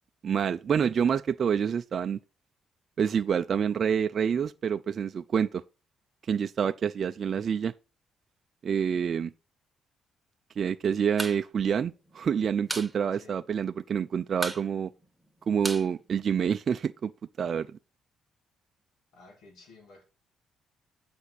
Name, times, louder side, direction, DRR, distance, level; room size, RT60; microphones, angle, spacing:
voice 1, 0.2-2.2 3.0-5.6 6.3-7.7 8.6-9.3 10.6-14.9 15.5-17.1 17.4-17.7, right 7 dB, 50° right, 0.5 m, -27 dB
sound 1, 11.2-11.4 11.7-11.8 12.1-12.9 13.2-13.3 13.6-14.0 14.3-16.7, right 2 dB, 5° right, 1.5 m, -36 dB
voice 2, 19.1-20.0, left 3 dB, 80° left, 3.8 m, -53 dB
8.1 x 6.0 x 4.2 m
cardioid pair, 90°, 0 cm